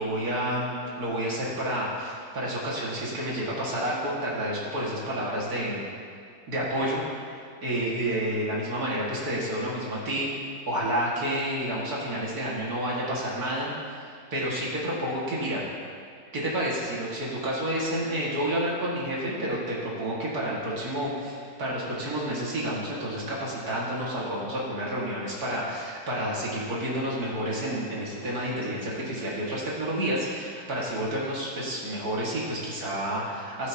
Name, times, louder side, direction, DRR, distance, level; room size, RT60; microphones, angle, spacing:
voice 1, 0.0-5.9 6.5-7.0 7.6-10.3 10.7-13.7 14.0-14.1 14.3-15.6 16.3-33.7, right 1 dB, 75° right, -6 dB, 2.6 m, -30 dB
16.5 x 7.8 x 2.9 m, 2.3 s
omnidirectional pair, 1.6 m